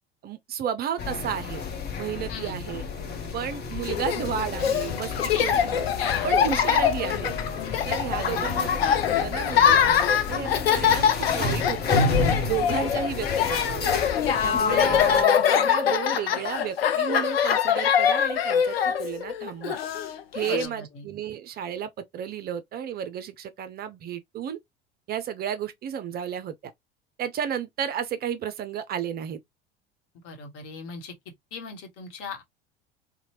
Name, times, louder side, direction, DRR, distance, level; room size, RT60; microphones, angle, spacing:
voice 1, 0.2-1.6 2.0-2.8 3.3-5.9 6.2-7.3 7.8-8.8 9.1-9.9 10.3-12.1 12.5-13.9 14.4-19.8 20.3-24.6 25.1-26.5 27.2-29.4, right 9 dB, 30° right, 0.5 m, -32 dB
sound 1, 1.0-15.2, left 3 dB, 35° left, 0.9 m, -32 dB
voice 2, 2.3-2.6 5.3-5.5 6.0-6.3 8.1-8.5 20.5-21.1 30.2-31.1 31.5-32.4, left 5 dB, 50° left, 1.1 m, -37 dB
Laughter, 3.9-20.7, left 8 dB, 80° left, 0.5 m, -24 dB
2.8 x 2.2 x 2.9 m
figure-of-eight pair, 70°, 30 cm